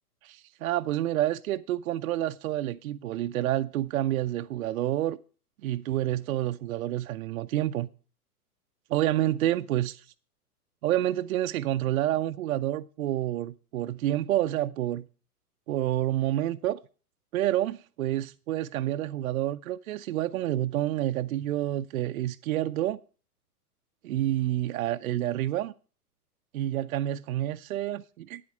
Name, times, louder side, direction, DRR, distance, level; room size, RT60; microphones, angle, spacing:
voice 1, 0.2-5.2 5.6-7.9 8.9-10.0 10.8-15.0 15.7-16.8 17.3-23.0 24.0-25.7 26.5-28.4, right 13 dB, 65° right, 0.6 m, -28 dB
9.3 x 8.6 x 5.3 m
hypercardioid pair, 115°, 46 cm